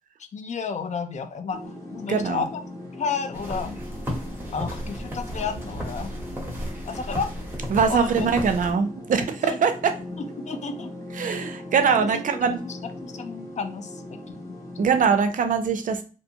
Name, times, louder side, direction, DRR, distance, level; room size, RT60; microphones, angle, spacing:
voice 1, 0.3-1.6 1.9-2.6 3.0-3.8 4.5-6.1 6.9-7.3 7.9-8.3 9.4-9.6 10.2-10.9 11.2-11.4 11.9-14.0 14.3-14.5, left 5 dB, 55° left, 8 dB, 0.4 m, -32 dB
sound 1, 1.5-15.2, left 1 dB, 25° left, 1.1 m, -40 dB
voice 2, 2.1-2.4 7.7-10.0 11.2-12.6 14.8-16.0, right 6 dB, 70° right, 7 dB, 0.5 m, -22 dB
sound 2, 3.3-8.7, equal, 15° right, 0.9 m, -34 dB
2.5 x 2.2 x 2.8 m, 0.35 s
wide cardioid pair, 110°, 14 cm